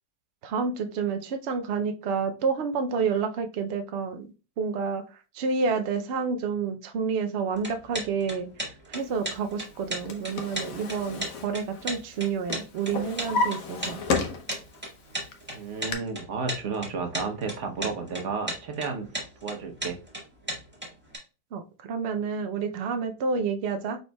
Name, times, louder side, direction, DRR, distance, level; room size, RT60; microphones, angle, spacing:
voice 1, 0.4-4.3 4.6-14.0 21.5-24.0, right 5 dB, 80° right, 7 dB, 0.5 m, -29 dB
sound 1, 7.5-21.2, right 1 dB, 5° right, 1.5 m, -35 dB
Drawer open or close, 9.7-12.2 12.5-14.8 15.3-15.9, left 3 dB, 60° left, 1.2 m, -32 dB
voice 2, 15.5-19.1 19.4-20.0, right 4 dB, 55° right, 4 dB, 1.1 m, -32 dB
5.4 x 4.4 x 2.2 m, 0.32 s
omnidirectional pair, 1.7 m